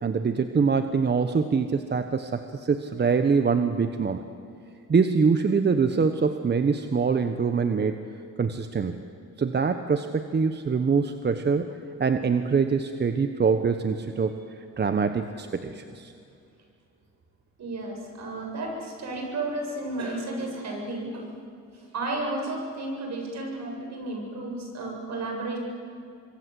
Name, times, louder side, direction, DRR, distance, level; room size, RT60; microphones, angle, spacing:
voice 1, 0.0-4.2 4.9-8.0 8.4-9.0 9.4-11.7 12.0-14.4 14.8-16.1, right 5 dB, 35° right, 8 dB, 1.2 m, -24 dB
voice 2, 17.6-21.3 21.7-25.6, right 2 dB, 60° right, 1 dB, 7.7 m, -33 dB
27.0 x 23.5 x 7.9 m, 2.4 s
cardioid pair, 90°, 30 cm